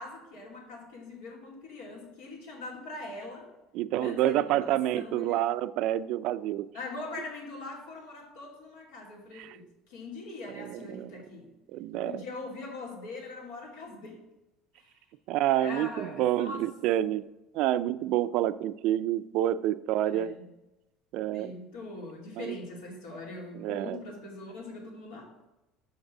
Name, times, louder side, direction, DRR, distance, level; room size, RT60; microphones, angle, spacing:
voice 1, 0.0-3.5 4.0-5.4 6.7-11.5 11.9-14.2 14.8-14.9 15.6-16.7 20.0-20.5 21.3-25.4, left 2 dB, 90° left, -1 dB, 2.7 m, -42 dB
voice 2, 3.7-6.7 9.4-9.5 10.6-11.1 11.7-12.1 15.3-17.2 17.5-20.3 21.1-21.5 22.4-22.6 23.6-24.0, right 13 dB, 65° right, 14 dB, 0.4 m, -28 dB
6.5 x 5.4 x 6.1 m, 0.99 s
cardioid pair, 125°, 0 cm